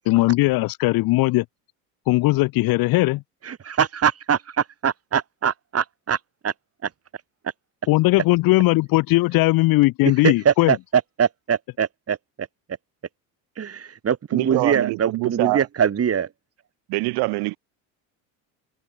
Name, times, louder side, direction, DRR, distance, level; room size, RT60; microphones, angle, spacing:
voice 1, 0.0-1.4 2.1-3.2 7.9-10.7, left 20 dB, 60° left, 0.9 m, -19 dB
voice 2, 3.4-6.5 6.8-7.5 10.0-12.5 13.6-16.3, right 8 dB, 35° right, 5.4 m, -23 dB
voice 3, 14.3-15.6 16.9-17.6, right 25 dB, 70° right, 2.6 m, -24 dB
supercardioid pair, 95°, 41 cm